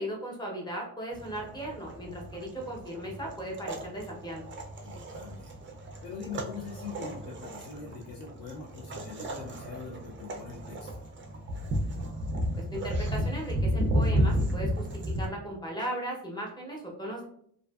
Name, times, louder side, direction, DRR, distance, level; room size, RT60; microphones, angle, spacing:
voice 1, 0.0-4.4 12.5-14.9 15.2-17.2, right 1 dB, 10° left, -2 dB, 0.6 m, -37 dB
sound 1, 1.1-15.3, equal, 30° right, 0.3 m, -33 dB
voice 2, 4.8-5.6 6.0-11.0, left 4 dB, 55° left, -2 dB, 0.6 m, -43 dB
2.6 x 2.4 x 2.2 m, 0.65 s
cardioid pair, 135°, 42 cm